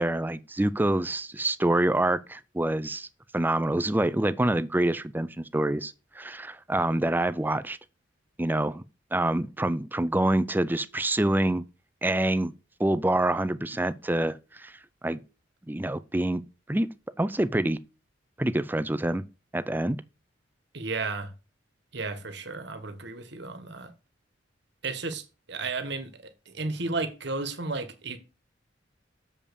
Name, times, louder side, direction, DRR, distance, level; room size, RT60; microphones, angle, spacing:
voice 1, 0.0-3.1 3.3-7.8 8.4-8.8 9.1-11.6 12.0-12.5 12.8-14.7 15.0-15.2 15.7-16.4 16.7-16.9 17.2-17.8 18.4-19.2 19.5-20.0, right 1 dB, 10° right, 0.4 m, -26 dB
voice 2, 20.7-21.3 21.9-23.9 24.8-26.2 26.5-28.2, right 3 dB, 60° right, 1.3 m, -33 dB
7.2 x 5.2 x 6.7 m
head